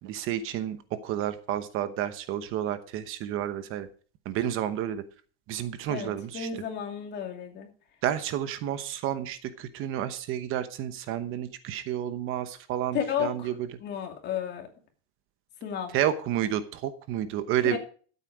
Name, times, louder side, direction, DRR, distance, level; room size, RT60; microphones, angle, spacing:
voice 1, 0.0-0.8 1.0-3.9 4.2-5.0 5.5-6.5 8.0-13.7 15.9-17.8, right 11 dB, 45° right, 11 dB, 1.0 m, -30 dB
voice 2, 5.9-7.7 12.9-13.5 13.8-14.7 15.6-15.9 17.7-17.8, left 8 dB, 35° left, 4 dB, 2.6 m, -32 dB
13.5 x 8.3 x 4.8 m, 0.41 s
cardioid pair, 170°, 30 cm